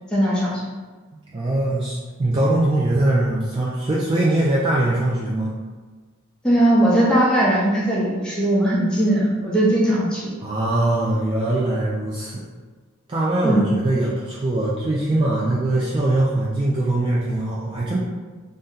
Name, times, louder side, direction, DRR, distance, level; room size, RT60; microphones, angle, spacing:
voice 1, 0.1-0.6 6.4-10.3 13.4-13.6, right 1 dB, 5° left, -6 dB, 0.7 m, -19 dB
voice 2, 1.1-5.5 10.4-12.4 13.1-18.0, right 1 dB, 25° right, -5 dB, 0.3 m, -22 dB
2.7 x 2.1 x 3.6 m, 1.4 s
head